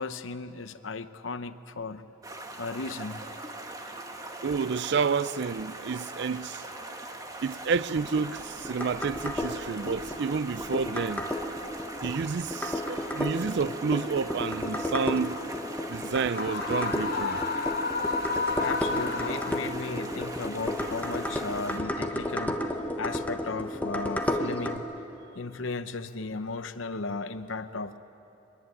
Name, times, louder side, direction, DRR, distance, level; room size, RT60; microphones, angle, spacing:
voice 1, 0.0-2.0 2.6-3.2 12.9-13.0 18.6-22.6 23.0-24.8 25.3-28.0, left 3 dB, 90° left, 0.9 m, -35 dB
Stream, 2.2-21.8, right 2 dB, 20° right, 1.6 m, -41 dB
voice 2, 4.4-6.7 7.4-11.3 12.0-15.5 15.9-17.4, right 5 dB, 60° right, 0.4 m, -30 dB
sound 1, 8.0-24.8, left 1 dB, 10° left, 1.3 m, -33 dB
Screaming, 16.3-19.9, left 4 dB, 55° left, 1.7 m, -31 dB
23.0 x 22.0 x 8.9 m
head